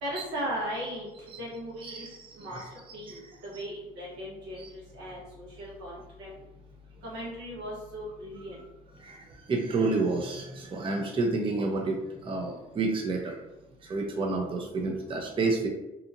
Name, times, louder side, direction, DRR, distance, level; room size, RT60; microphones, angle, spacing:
voice 1, 0.0-2.1 2.4-2.6 2.9-6.3 7.0-8.6, equal, 80° right, -5 dB, 1.1 m, -37 dB
voice 2, 9.5-13.4 13.8-15.7, right 3 dB, 30° right, 1 dB, 0.5 m, -29 dB
2.7 x 2.4 x 2.6 m, 1.0 s
supercardioid pair, 60°, 18 cm